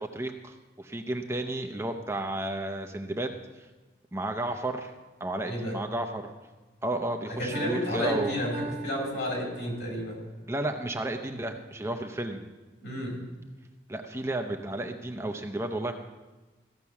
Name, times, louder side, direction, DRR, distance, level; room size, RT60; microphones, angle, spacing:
voice 1, 0.0-3.3 3.6-3.7 4.1-4.9 5.2-6.3 6.8-8.4 10.5-12.4 13.9-15.9, right 1 dB, 15° right, 5 dB, 0.6 m, -32 dB
voice 2, 5.4-5.8 7.3-8.5 8.8-10.2 12.8-13.2, equal, 75° left, -3 dB, 4.7 m, -31 dB
Piano, 7.5-10.0, right 1 dB, 35° right, 1.1 m, -39 dB
15.0 x 6.0 x 7.0 m, 1.2 s
head